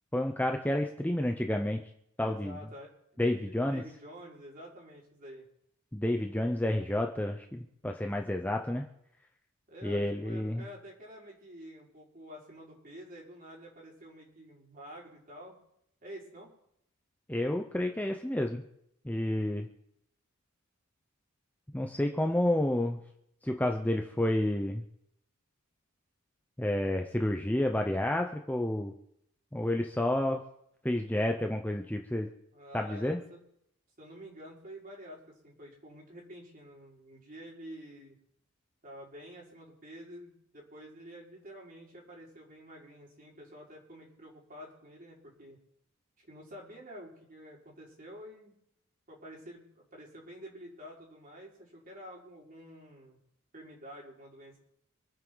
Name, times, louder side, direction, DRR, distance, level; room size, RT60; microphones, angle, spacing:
voice 1, 0.1-1.8 2.2-2.6 3.2-3.8 5.9-8.8 9.8-10.6 17.3-18.6 19.0-19.7 21.7-23.0 23.4-24.8 26.6-28.9 29.5-30.4 30.8-32.3 32.7-33.2, left 1 dB, 5° left, 3 dB, 0.7 m, -30 dB
voice 2, 2.2-5.4 9.7-15.6 16.0-16.5 32.5-33.4 34.0-38.2 38.8-45.6 46.2-48.5 49.1-53.2 53.5-54.6, equal, 40° right, -4 dB, 5.0 m, -49 dB
26.5 x 9.5 x 4.0 m, 0.76 s
head